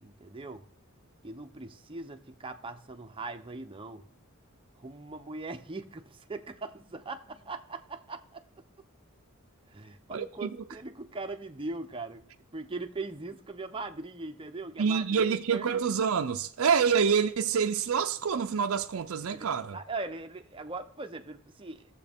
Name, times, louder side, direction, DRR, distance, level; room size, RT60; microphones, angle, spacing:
voice 1, 0.0-0.6 1.2-4.0 4.8-8.4 9.7-12.2 12.5-15.7 19.3-21.9, right 3 dB, 25° right, 0.7 m, -40 dB
voice 2, 10.1-10.6 14.8-19.8, right 6 dB, 65° right, 0.5 m, -27 dB
18.0 x 7.3 x 3.5 m
head